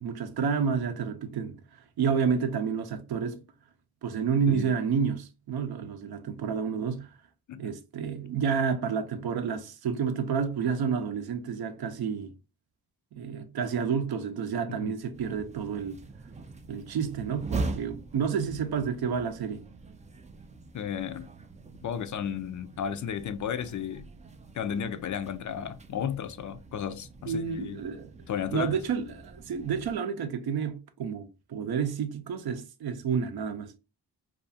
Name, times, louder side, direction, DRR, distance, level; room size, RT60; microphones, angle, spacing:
voice 1, 0.0-1.6 2.0-3.4 4.0-7.1 7.6-12.3 13.1-16.0 16.7-19.6 27.3-28.1 28.5-33.8, right 6 dB, 60° right, 0.6 m, -30 dB
sound 1, 15.1-30.0, right 3 dB, 20° right, 0.3 m, -42 dB
voice 2, 20.7-21.2 21.8-24.0 24.5-27.8 28.3-28.8, left 8 dB, 45° left, 0.4 m, -33 dB
2.4 x 2.3 x 2.5 m
cardioid pair, 55°, 42 cm